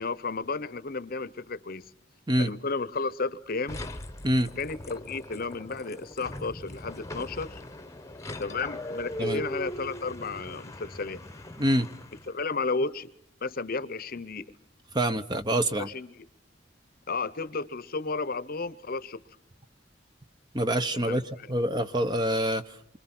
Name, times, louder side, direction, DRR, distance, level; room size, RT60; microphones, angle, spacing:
voice 1, 0.0-1.9 2.4-3.8 4.6-7.6 8.4-11.2 12.3-13.1 13.4-14.4 15.8-16.2 17.1-19.2 20.9-21.2, left 4 dB, 50° left, 0.9 m, -33 dB
sound 1, 3.7-12.4, left 1 dB, 15° left, 1.1 m, -39 dB
voice 2, 14.9-15.9 20.5-21.2 21.5-22.7, right 1 dB, 25° right, 1.0 m, -26 dB
27.5 x 25.0 x 6.1 m
head